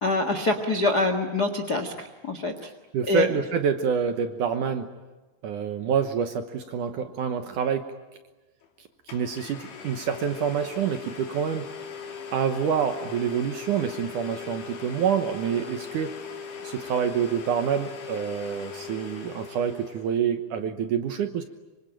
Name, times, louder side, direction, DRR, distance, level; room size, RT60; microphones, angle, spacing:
voice 1, 0.0-2.7 3.1-3.3, left 2 dB, 55° left, 7 dB, 1.1 m, -25 dB
voice 2, 2.9-4.9 5.4-7.9 9.1-11.7 12.3-16.2 16.6-21.4, right 7 dB, 70° right, 7 dB, 2.1 m, -27 dB
Domestic sounds home sounds, 8.6-8.7 9.1-20.1, left 6 dB, 90° left, 5.3 m, -39 dB
25.5 x 25.0 x 9.1 m, 1.2 s
omnidirectional pair, 4.8 m